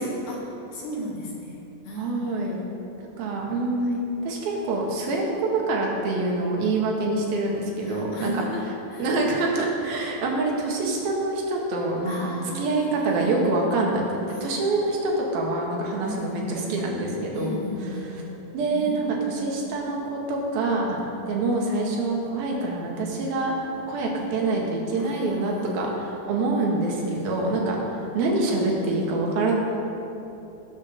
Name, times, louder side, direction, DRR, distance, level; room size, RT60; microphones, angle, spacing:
voice 1, 0.0-2.7 3.8-3.9 7.8-9.1 12.0-13.3 14.3-14.8 16.0-16.8 17.3-19.5 20.7-20.8 21.3-21.4 24.9-25.9 27.0-27.5 27.9-28.0, left 1 dB, 55° left, -2 dB, 3.2 m, -36 dB
voice 2, 2.0-2.6 3.2-8.3 9.0-17.6 18.5-21.0 21.3-23.5 23.9-27.8 28.1-29.5, right 2 dB, 85° right, -1 dB, 3.7 m, -26 dB
18.0 x 6.2 x 7.1 m, 2.9 s
omnidirectional pair, 4.2 m